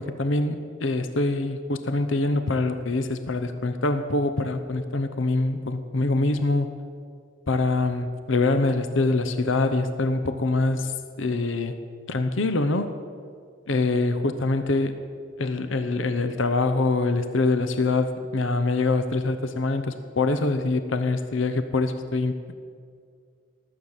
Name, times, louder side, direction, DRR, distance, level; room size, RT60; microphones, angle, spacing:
voice 1, 0.0-6.7 7.5-10.9 11.2-11.8 12.1-12.9 13.7-15.0 15.4-22.5, left 2 dB, 85° left, 10 dB, 0.9 m, -24 dB
19.0 x 8.0 x 7.3 m, 2.2 s
head